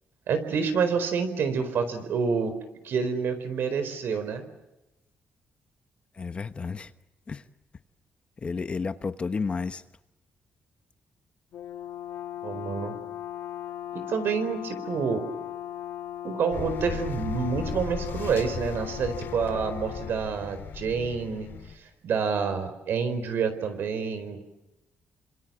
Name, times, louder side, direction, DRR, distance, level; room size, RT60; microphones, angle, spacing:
voice 1, 0.3-2.6 2.8-4.5 12.4-13.0 13.9-15.2 16.2-21.5 22.0-24.4, right 6 dB, 65° right, 10 dB, 4.6 m, -28 dB
voice 2, 6.2-6.9 7.3-7.4 8.4-9.8, left 4 dB, 30° left, 11 dB, 1.0 m, -31 dB
Brass instrument, 11.5-20.2, left 12 dB, 85° left, 1.7 m, -38 dB
sound 1, 16.5-21.8, left 7 dB, 65° left, 4.1 m, -37 dB
28.5 x 26.5 x 7.6 m, 0.94 s
cardioid pair, 150°, 4 cm